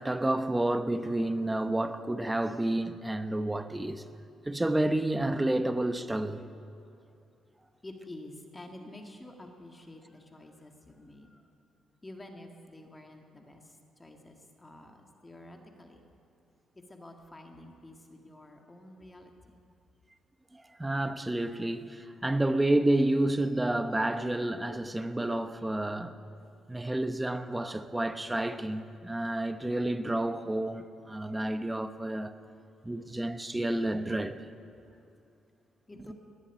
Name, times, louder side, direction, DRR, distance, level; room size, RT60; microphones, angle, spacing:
voice 1, 0.0-4.0 4.5-6.4 20.5-26.2 26.7-32.4 32.8-34.4 36.1-36.2, right 1 dB, 10° right, 0.8 m, -30 dB
voice 2, 7.8-11.4 12.0-16.0 16.9-19.3 35.9-36.1, left 1 dB, 20° left, 1.7 m, -49 dB
19.5 x 7.2 x 10.0 m
cardioid pair, 90°, 0 cm